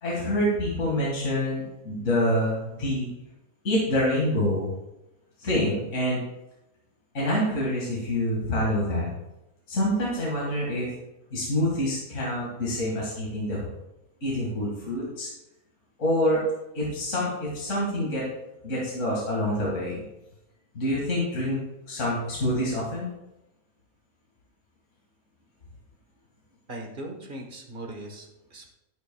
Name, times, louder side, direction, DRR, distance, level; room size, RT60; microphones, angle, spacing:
voice 1, 0.0-3.1 3.6-4.7 5.4-6.2 7.1-9.1 9.7-10.9 11.3-13.7 14.2-15.3 16.0-16.4 16.7-18.3 18.6-20.0 20.7-21.6 21.9-23.1, left 1 dB, 50° left, -5 dB, 2.3 m, -26 dB
voice 2, 26.7-28.7, right 1 dB, 35° right, 1 dB, 1.4 m, -39 dB
10.5 x 10.5 x 2.3 m, 0.92 s
omnidirectional pair, 1.6 m